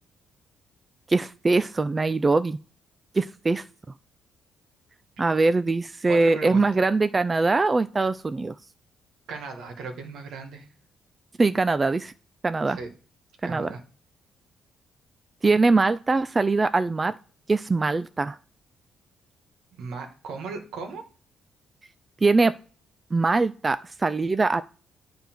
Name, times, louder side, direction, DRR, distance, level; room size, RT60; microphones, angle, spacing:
voice 1, 1.1-2.6 3.1-3.6 5.2-8.5 11.4-12.1 12.4-12.8 13.4-13.7 15.4-17.1 17.5-18.4 22.2-22.5 23.1-24.6, right 3 dB, 25° right, 13 dB, 0.3 m, -22 dB
voice 2, 6.1-6.7 9.3-10.7 12.7-12.9 13.4-13.8 19.7-21.0, right 4 dB, 75° right, 5 dB, 1.6 m, -37 dB
9.2 x 3.4 x 4.5 m, 0.39 s
cardioid pair, 90°, 0 cm